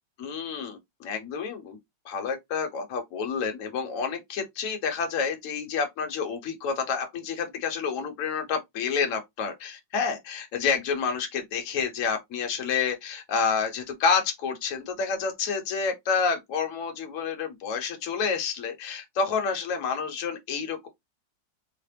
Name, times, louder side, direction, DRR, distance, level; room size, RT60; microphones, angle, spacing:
voice 1, 0.2-1.8 2.0-20.9, left 6 dB, 55° left, 1.0 m, -29 dB
3.9 x 2.1 x 3.2 m
omnidirectional pair, 2.1 m